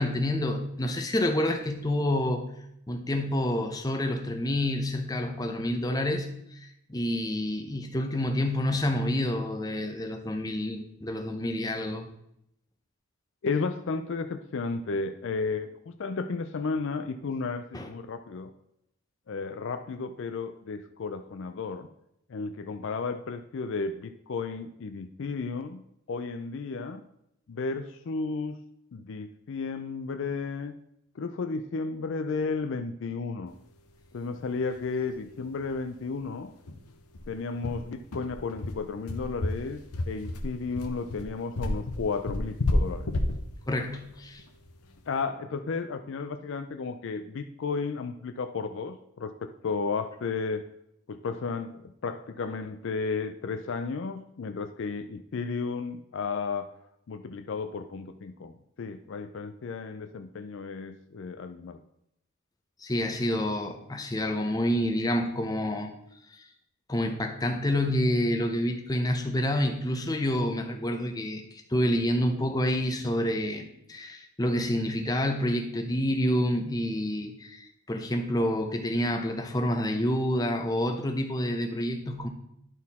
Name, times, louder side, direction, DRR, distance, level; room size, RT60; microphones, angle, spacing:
voice 1, 0.0-2.5 2.9-6.3 6.6-12.1 17.7-17.9 43.7-44.4 62.8-65.9 66.3-66.4 66.9-82.3, left 1 dB, 15° left, 5 dB, 0.7 m, -28 dB
voice 2, 13.4-18.5 19.3-21.9 22.3-25.8 26.1-27.0 27.5-28.6 28.9-30.7 31.2-33.5 34.1-36.5 37.3-43.1 45.1-50.6 51.1-56.8 57.1-58.5 58.8-61.8, left 4 dB, 55° left, 8 dB, 0.4 m, -33 dB
sound 1, 34.7-34.8 35.1-35.2 35.6-35.7 36.1-36.2 36.7-45.1, left 1 dB, 85° left, 0.8 m, -31 dB
10.5 x 4.2 x 4.1 m, 0.77 s
head